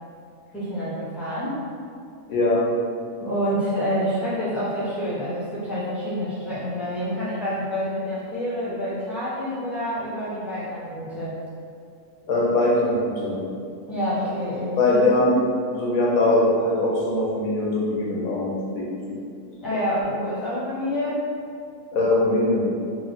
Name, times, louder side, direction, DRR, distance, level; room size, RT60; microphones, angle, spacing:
voice 1, 0.5-1.6 3.2-11.4 13.9-15.1 19.6-21.2, equal, ahead, -10 dB, 0.9 m, -27 dB
voice 2, 2.3-2.6 12.3-13.4 14.8-15.3 15.7-18.8 21.9-22.6, left 2 dB, 85° left, -4 dB, 1.3 m, -21 dB
3.5 x 2.5 x 3.9 m, 2.3 s
omnidirectional pair, 1.5 m